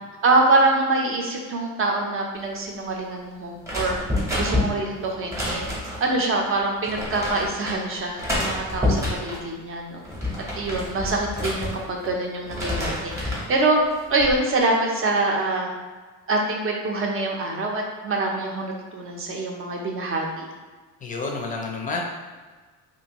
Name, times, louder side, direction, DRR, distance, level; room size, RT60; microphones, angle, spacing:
voice 1, 0.2-4.0 4.3-5.7 6.0-10.0 10.6-13.8 14.1-15.7 16.3-20.5, right 2 dB, 40° right, 0 dB, 0.6 m, -24 dB
sound 1, 3.6-6.1 6.8-7.8 8.2-9.4 9.9-12.1 12.4-13.5 14.0-14.4, left 1 dB, 10° right, 0.8 m, -28 dB
voice 2, 21.0-22.0, left 3 dB, 25° left, 1 dB, 0.5 m, -29 dB
2.8 x 2.6 x 2.9 m, 1.4 s
cardioid pair, 115°, 33 cm